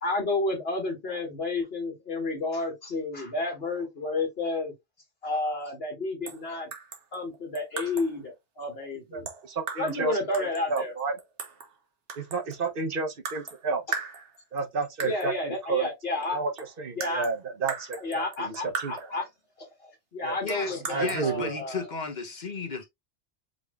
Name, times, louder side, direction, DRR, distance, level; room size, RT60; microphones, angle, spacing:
voice 1, 0.0-4.7 5.2-6.7 7.1-9.3 9.8-10.9 15.0-16.4 17.0-17.3 18.0-19.3 19.6-21.9, left 2 dB, 60° left, 1.4 m, -31 dB
sound 1, 6.3-6.4 6.7-8.2 9.3-10.0 10.3-11.7 12.1-12.6 13.2-13.6 13.9-14.6 15.0-15.3 16.2-16.3 16.6-19.2 20.5-21.2, right 5 dB, 85° right, 1.3 m, -38 dB
voice 2, 9.1-11.2 12.2-13.8 14.5-15.9 16.3-16.5 16.8-18.9 20.2-20.4 20.9-21.5, right 4 dB, 55° right, 1.0 m, -31 dB
voice 3, 20.4-22.8, left 4 dB, 45° left, 0.9 m, -34 dB
5.0 x 3.3 x 2.4 m
omnidirectional pair, 1.2 m